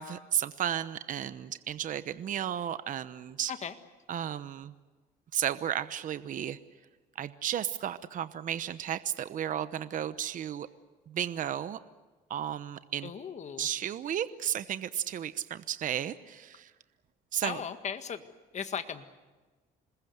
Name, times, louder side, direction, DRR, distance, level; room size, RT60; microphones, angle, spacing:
voice 1, 0.0-3.5 4.1-4.7 5.3-6.6 7.2-10.7 11.1-11.8 12.3-13.1 13.6-16.7 17.3-17.6, right 10 dB, 50° right, 13 dB, 1.0 m, -33 dB
voice 2, 13.0-13.7 17.4-18.3 18.5-19.1, left 7 dB, 45° left, 9 dB, 1.8 m, -37 dB
27.0 x 21.0 x 8.0 m, 1.3 s
cardioid pair, 110°, 17 cm